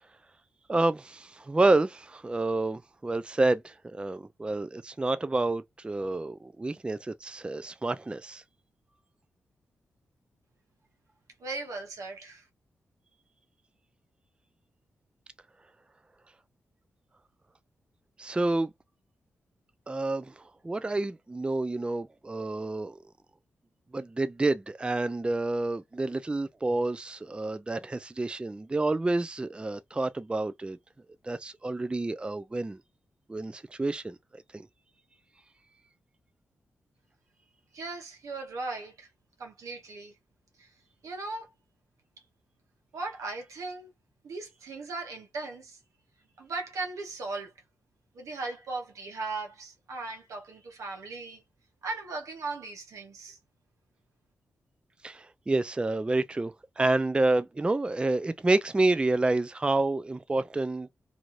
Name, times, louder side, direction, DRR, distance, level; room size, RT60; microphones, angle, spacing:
voice 1, 0.7-8.4 18.2-18.7 19.9-20.3 20.6-23.0 23.9-30.8 31.2-32.8 33.3-34.7 55.0-60.9, right 2 dB, 20° right, 0.3 m, -29 dB
voice 2, 11.4-12.5 37.7-39.1 39.4-40.1 40.6-40.7 41.0-41.5 42.9-43.9 44.2-45.8 46.4-47.5 48.1-51.4 51.8-53.4, right 3 dB, 80° right, 1.0 m, -38 dB
2.7 x 2.3 x 3.1 m
cardioid pair, 60°, 5 cm